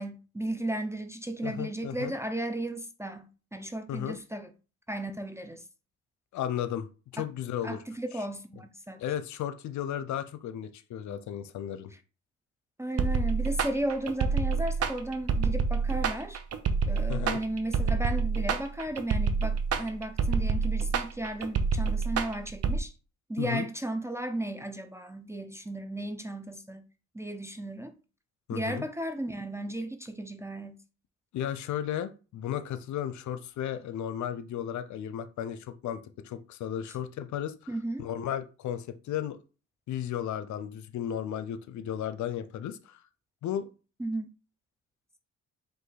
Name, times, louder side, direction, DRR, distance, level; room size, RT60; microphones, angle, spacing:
voice 1, 0.0-4.5 4.9-5.6 7.2-7.3 7.6-9.0 11.9-12.0 12.8-16.4 16.9-22.9 23.3-26.9 27.1-27.9 28.5-30.8 37.7-38.1 44.0-44.3, right 1 dB, 10° right, 0.5 m, -35 dB
voice 2, 1.4-2.1 3.9-4.2 6.3-6.9 7.1-7.8 9.0-11.9 17.1-17.4 23.4-23.7 28.5-28.8 31.3-37.5 38.0-39.4 39.9-43.0 43.4-43.7, left 10 dB, 70° left, 0.6 m, -34 dB
sound 1, 13.0-22.8, right 5 dB, 55° right, 0.7 m, -27 dB
5.2 x 2.5 x 4.0 m
cardioid pair, 90°, 30 cm